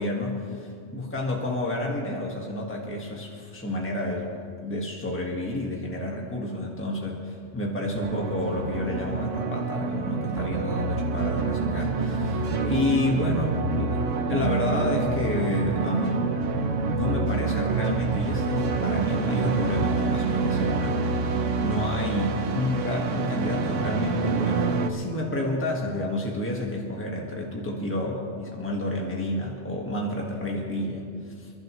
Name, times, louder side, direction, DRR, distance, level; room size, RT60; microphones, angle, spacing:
voice 1, 0.0-14.0 14.3-31.5, left 1 dB, 10° left, -2 dB, 1.7 m, -30 dB
sound 1, 7.9-24.9, right 4 dB, 85° right, 1.2 m, -27 dB
28.5 x 11.5 x 3.2 m, 2.2 s
omnidirectional pair, 1.2 m